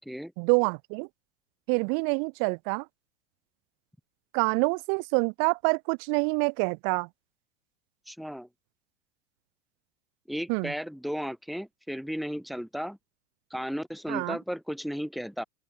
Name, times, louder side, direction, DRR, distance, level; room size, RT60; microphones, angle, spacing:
voice 1, 0.4-1.1 1.7-2.9 4.3-7.1 10.5-10.7 14.1-14.4, right 40 dB or more, 45° right, 0.6 m, -26 dB
voice 2, 8.1-8.5 10.3-13.0 13.5-15.4, equal, ahead, 3.7 m, -34 dB
open air
hypercardioid pair, 95°, 37 cm